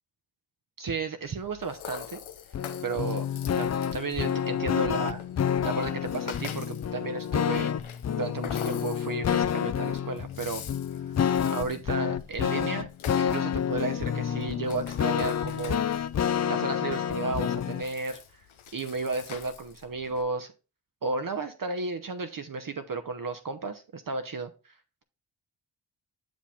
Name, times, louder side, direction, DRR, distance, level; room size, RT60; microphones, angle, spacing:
voice 1, 0.8-2.2 2.8-3.3 3.6-5.2 5.6-7.7 8.1-10.6 11.5-12.9 13.2-15.9 16.5-18.4 18.7-20.5 21.0-24.7, right 4 dB, 45° right, 8 dB, 0.8 m, -33 dB
Rattle (instrument), 1.2-20.2, left 9 dB, 75° left, 0.8 m, -45 dB
sound 1, 2.5-17.8, left 8 dB, 35° left, 0.4 m, -29 dB
6.7 x 5.1 x 3.4 m, 0.32 s
cardioid pair, 40°, 49 cm